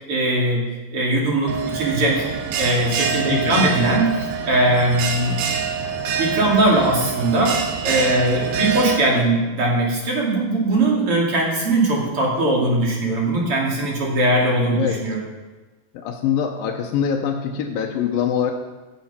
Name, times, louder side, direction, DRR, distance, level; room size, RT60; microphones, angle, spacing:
voice 1, 0.1-0.6 0.9-2.2 2.6-4.1 4.4-5.4 6.2-15.2, right 1 dB, 40° right, -3 dB, 3.2 m, -20 dB
Bell, 1.5-9.0, right 6 dB, 80° right, 3.0 m, -26 dB
voice 2, 3.3-3.7 14.8-15.0 15.9-18.5, left 8 dB, 80° left, 0 dB, 2.6 m, -23 dB
15.5 x 7.8 x 5.7 m, 1.2 s
omnidirectional pair, 4.2 m